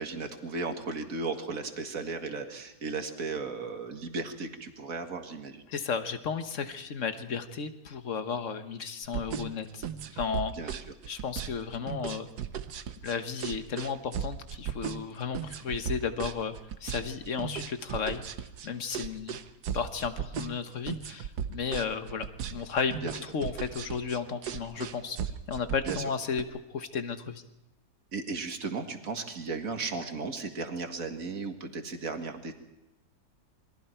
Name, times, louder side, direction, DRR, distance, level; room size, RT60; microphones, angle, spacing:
voice 1, 0.0-5.6 10.5-10.7 23.0-23.1 25.9-26.0 28.1-32.5, right 4 dB, 55° right, 5 dB, 2.2 m, -35 dB
voice 2, 5.7-9.9 10.1-10.8 11.1-12.3 13.0-16.5 16.8-18.2 18.6-19.4 19.7-25.2 25.5-27.4, left 6 dB, 50° left, 9 dB, 1.4 m, -34 dB
sound 1, 9.0-26.4, right 8 dB, 75° right, 1.4 m, -36 dB
27.0 x 22.0 x 4.5 m, 0.93 s
omnidirectional pair, 1.7 m